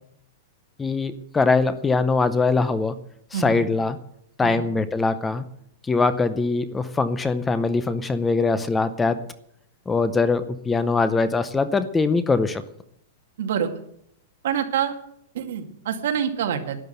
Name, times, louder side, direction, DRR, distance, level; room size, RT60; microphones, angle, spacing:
voice 1, 0.8-3.0 3.3-4.0 4.4-5.5 5.8-9.2 9.9-12.6, left 3 dB, 10° left, 13 dB, 0.6 m, -22 dB
voice 2, 13.4-13.7 14.4-14.9 15.3-16.8, right 8 dB, 60° right, 5 dB, 2.2 m, -26 dB
12.5 x 10.5 x 8.0 m, 0.71 s
supercardioid pair, 175°, 0 cm